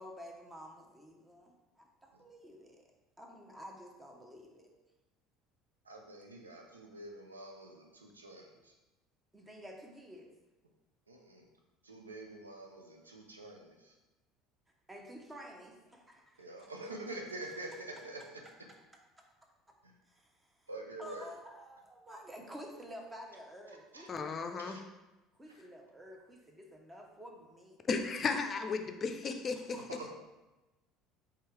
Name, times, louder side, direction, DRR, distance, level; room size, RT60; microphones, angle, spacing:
voice 1, 0.0-2.8 3.2-4.7 9.3-10.3 14.9-16.7 19.2-19.3 20.1-20.5 21.0-24.8 25.3-27.8 29.6-30.1, equal, 15° right, 1 dB, 0.8 m, -51 dB
voice 2, 5.8-8.7 11.1-11.5 11.8-13.9 16.4-18.4 19.8-19.9 20.7-21.3 23.7-24.1 24.6-24.8 29.9-30.1, right 2 dB, 90° right, 1 dB, 0.5 m, -46 dB
voice 3, 24.1-24.8 27.9-29.6, left 4 dB, 35° left, 7 dB, 0.5 m, -34 dB
4.5 x 3.6 x 3.2 m, 1.1 s
figure-of-eight pair, 65°, 0 cm